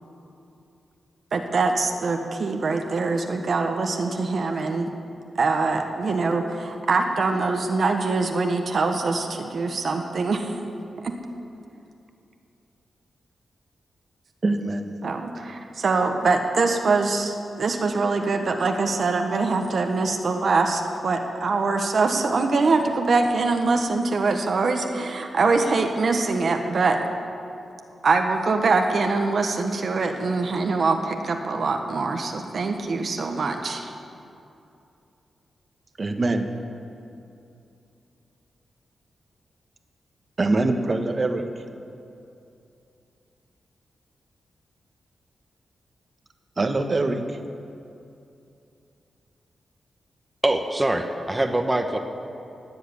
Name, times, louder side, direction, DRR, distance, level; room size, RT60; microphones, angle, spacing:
voice 1, 1.3-4.9 5.4-10.5 11.0-11.2 15.0-27.0 28.0-33.9, right 3 dB, 60° right, 4 dB, 1.3 m, -23 dB
voice 2, 14.4-14.8 36.0-36.5 40.4-41.5 46.6-47.4, right 2 dB, 40° right, 6 dB, 1.3 m, -23 dB
voice 3, 50.4-52.0, right 1 dB, 15° right, 4 dB, 1.1 m, -23 dB
17.5 x 7.8 x 9.6 m, 2.7 s
cardioid pair, 95°, 0 cm